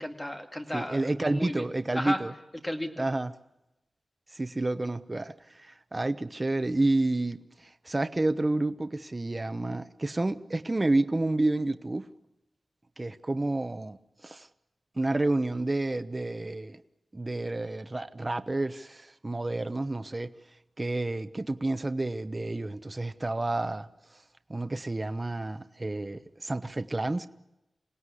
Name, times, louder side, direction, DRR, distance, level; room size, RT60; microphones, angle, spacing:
voice 1, 0.0-1.0 1.3-1.6 1.9-2.2 2.6-3.0, left 1 dB, 10° left, 2.2 m, -33 dB
voice 2, 0.7-2.3 3.0-3.3 4.3-12.0 13.0-14.0 14.2-14.5 15.0-16.8 17.1-20.3 20.8-23.9 24.5-27.3, right 2 dB, 25° right, 0.9 m, -30 dB
26.5 x 17.5 x 9.9 m
wide cardioid pair, 135°, 0 cm